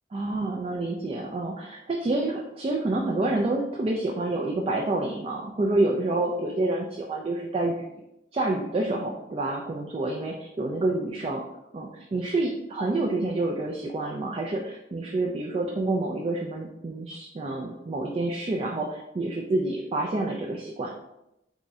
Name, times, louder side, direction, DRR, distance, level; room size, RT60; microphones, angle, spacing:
voice 1, 0.1-7.9 8.3-11.4 11.7-20.9, right 2 dB, 35° right, 0 dB, 0.3 m, -28 dB
3.5 x 3.0 x 2.7 m, 0.86 s
head